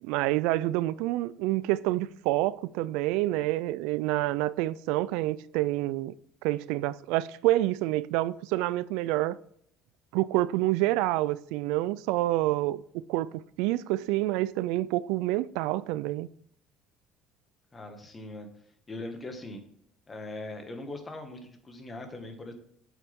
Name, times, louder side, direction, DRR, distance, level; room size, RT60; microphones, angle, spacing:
voice 1, 0.0-6.1 6.4-9.4 10.1-13.3 13.6-16.3, right 16 dB, 80° right, 0.3 m, -28 dB
voice 2, 17.7-18.5 18.9-19.6 20.1-22.5, left 2 dB, 25° left, 1.9 m, -40 dB
8.1 x 7.3 x 3.6 m
supercardioid pair, 105°, 0 cm